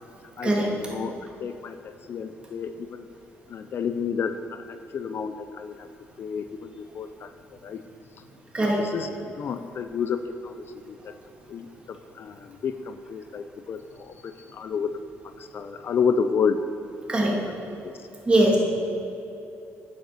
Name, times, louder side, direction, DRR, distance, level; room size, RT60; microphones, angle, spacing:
voice 1, 0.4-1.1 1.4-3.1 3.5-5.9 6.2-7.3 7.6-7.8 8.8-11.1 11.5-14.9 15.4-16.6 17.1-17.5 17.8-17.9, left 6 dB, 50° left, 9 dB, 0.5 m, -30 dB
voice 2, 18.3-18.6, right 1 dB, 20° right, -3 dB, 2.5 m, -21 dB
9.3 x 8.4 x 6.8 m, 2.9 s
cardioid pair, 115°, 5 cm